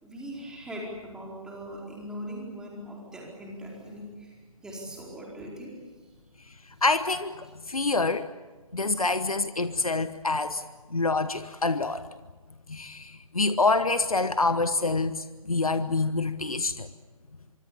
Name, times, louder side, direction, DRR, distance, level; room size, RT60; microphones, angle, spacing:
voice 1, 0.0-5.7 6.0-6.1 6.7-6.8 7.7-7.8 8.7-9.1, equal, 5° right, -3 dB, 4.5 m, -41 dB
voice 2, 6.8-8.3 8.7-10.6 10.9-12.0 12.7-16.9, left 3 dB, 80° left, 12 dB, 1.2 m, -26 dB
25.0 x 24.5 x 7.1 m, 1.3 s
figure-of-eight pair, 140°, 18 cm